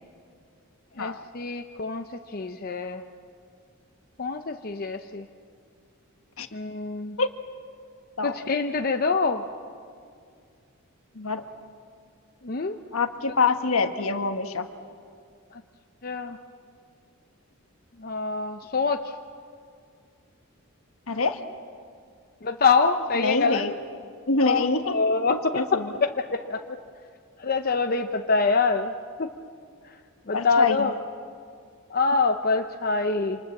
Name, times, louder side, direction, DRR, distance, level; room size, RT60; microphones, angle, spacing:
voice 1, 1.0-3.0 4.2-5.2 6.5-7.2 8.2-9.4 12.4-12.7 16.0-16.4 18.0-19.0 22.4-23.6 24.4-25.7 26.2-26.8 27.4-28.9 29.2-29.3 30.3-30.9 31.9-33.4, left 4 dB, 45° left, 5 dB, 0.8 m, -25 dB
voice 2, 12.9-14.7 21.1-21.4 23.1-23.7 24.3-25.0 25.2-26.0 30.3-30.9, left 3 dB, 70° left, 7 dB, 1.6 m, -25 dB
27.5 x 27.0 x 7.3 m, 2.2 s
head